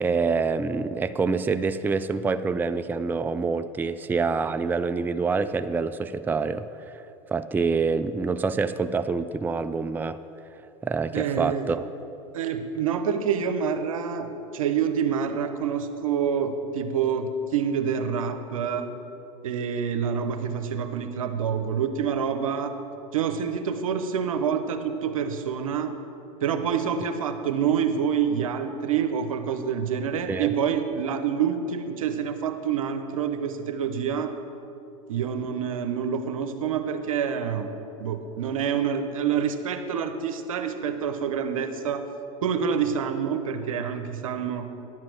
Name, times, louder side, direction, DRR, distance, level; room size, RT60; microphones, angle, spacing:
voice 1, 0.0-7.0 7.3-10.2 10.8-11.9 30.3-30.5, right 4 dB, 10° right, 12 dB, 0.3 m, -26 dB
voice 2, 11.1-11.7 12.3-14.3 14.5-18.9 19.4-22.7 23.1-25.9 26.4-34.3 35.1-37.7 38.0-42.1 42.4-44.7, right 7 dB, 90° right, 8 dB, 0.8 m, -27 dB
10.5 x 7.6 x 6.1 m, 2.9 s
hypercardioid pair, 90°, 17 cm